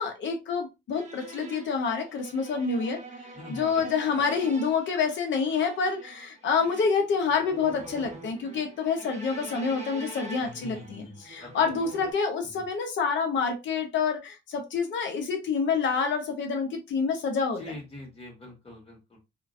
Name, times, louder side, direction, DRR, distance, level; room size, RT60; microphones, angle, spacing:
voice 1, 0.0-3.0 3.5-17.6, left 5 dB, 70° left, 3 dB, 1.0 m, -27 dB
sound 1, 0.9-12.1, right 2 dB, 35° right, 0.8 m, -45 dB
voice 2, 3.3-3.8 10.4-11.7 12.5-12.6 17.6-19.2, left 2 dB, 30° left, -1 dB, 1.7 m, -44 dB
2.8 x 2.5 x 2.5 m, 0.24 s
cardioid pair, 90°, 20 cm